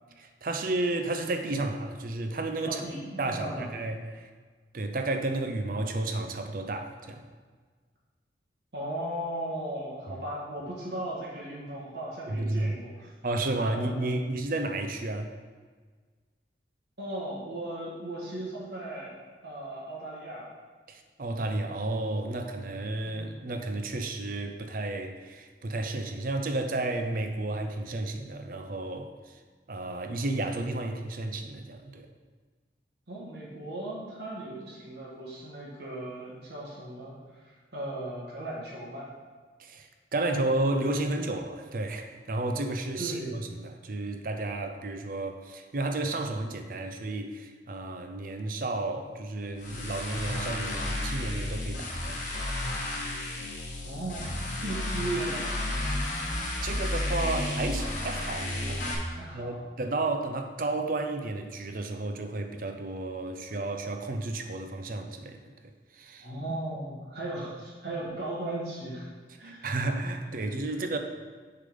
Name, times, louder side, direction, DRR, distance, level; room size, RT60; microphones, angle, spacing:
voice 1, 0.2-2.8 3.2-4.3 4.7-7.3 10.1-10.2 12.3-12.7 13.2-15.3 20.9-29.4 29.7-32.1 39.6-52.5 52.8-53.0 56.6-65.5 65.9-66.3 69.4-71.0, right 2 dB, 50° right, 6 dB, 0.5 m, -32 dB
voice 2, 2.6-3.7 8.7-13.1 13.7-14.1 17.0-19.1 19.4-20.5 23.0-23.5 33.1-37.1 37.4-39.1 43.0-43.3 53.8-55.5 59.1-59.6 66.2-69.1 69.4-69.7, right 1 dB, 65° right, -6 dB, 1.6 m, -37 dB
sound 1, 49.6-58.9, left 1 dB, 45° left, 1.0 m, -32 dB
6.7 x 3.8 x 5.1 m, 1.5 s
head